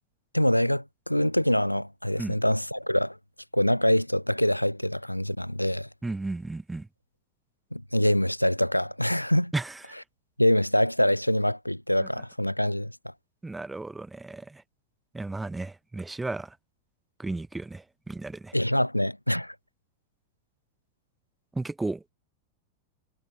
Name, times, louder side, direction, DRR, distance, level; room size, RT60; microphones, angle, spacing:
voice 1, 0.3-3.2 3.5-5.9 7.7-9.5 10.4-12.9 18.5-19.5, equal, 90° left, 0.7 m, -25 dB
voice 2, 6.0-6.9 9.5-10.0 12.0-12.1 13.4-14.6 15.1-16.6 17.2-18.5 21.5-22.0, right 2 dB, 10° right, 0.8 m, -34 dB
figure-of-eight pair, 90°, 0 cm